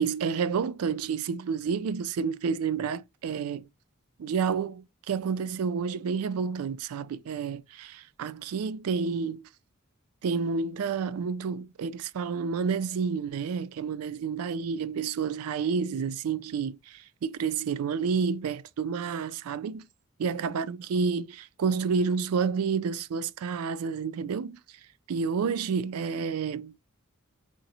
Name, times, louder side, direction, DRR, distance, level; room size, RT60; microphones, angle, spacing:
voice 1, 0.0-3.7 4.2-9.4 10.2-19.9 20.2-24.6 25.1-26.7, right 5 dB, 85° right, 0.3 m, -30 dB
3.7 x 2.0 x 2.7 m
head